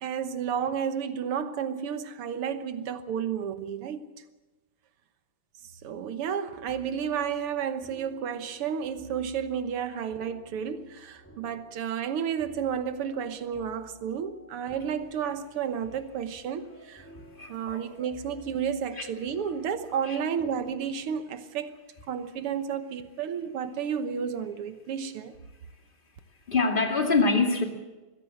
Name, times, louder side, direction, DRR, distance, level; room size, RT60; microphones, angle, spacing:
voice 1, 0.0-4.1 5.8-17.1 17.5-21.7 22.1-25.3, right 7 dB, 85° right, 2.1 m, -32 dB
sound 1, 6.5-21.2, right 1 dB, 5° left, 3.0 m, -54 dB
voice 2, 17.1-17.8 18.9-19.1 20.0-20.2 26.5-27.7, left 3 dB, 25° left, 2.4 m, -25 dB
21.5 x 16.0 x 7.8 m
omnidirectional pair, 2.4 m